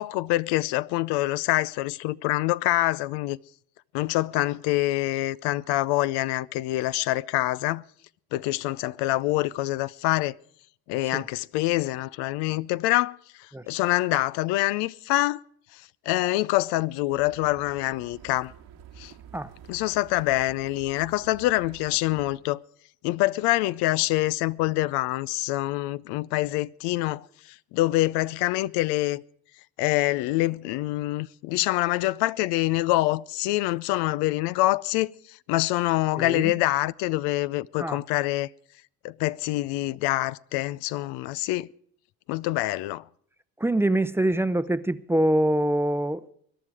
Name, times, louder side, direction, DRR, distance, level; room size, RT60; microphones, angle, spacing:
voice 1, 0.0-3.4 3.9-7.8 8.3-10.3 10.9-15.4 15.7-18.5 19.0-19.1 19.7-22.6 23.0-29.2 29.8-38.5 39.0-41.7 42.3-43.0, left 17 dB, 85° left, 0.6 m, -26 dB
sound 1, 17.1-22.4, right 9 dB, 90° right, 2.1 m, -49 dB
voice 2, 43.6-46.3, right 1 dB, 5° right, 0.6 m, -24 dB
22.0 x 11.0 x 4.8 m
cardioid pair, 100°, 39 cm